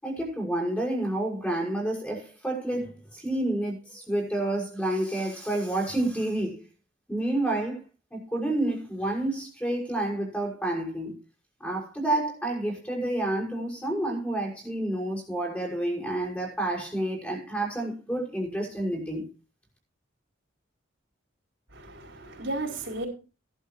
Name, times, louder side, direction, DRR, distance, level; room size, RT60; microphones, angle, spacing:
voice 1, 0.0-6.6 7.1-7.8 8.1-11.1 11.6-19.2, right 1 dB, 10° left, 6.0 m, -29 dB
voice 2, 21.7-23.1, right 2 dB, 75° right, 4.9 m, -34 dB
17.0 x 11.5 x 3.1 m
head